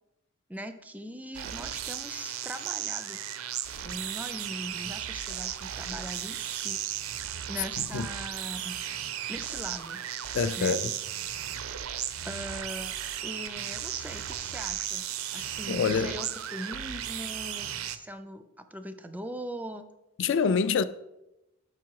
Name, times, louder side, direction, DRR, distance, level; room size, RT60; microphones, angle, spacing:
voice 1, 0.5-3.2 3.8-6.8 7.5-8.8 9.3-10.0 10.6-10.8 12.2-13.0 13.2-19.8, equal, 10° right, 0.4 m, -40 dB
sound 1, 1.3-18.0, right 10 dB, 85° right, 0.5 m, -35 dB
voice 2, 10.3-10.9 15.7-16.1 20.2-20.8, left 5 dB, 60° left, 0.4 m, -26 dB
6.0 x 5.8 x 4.7 m
head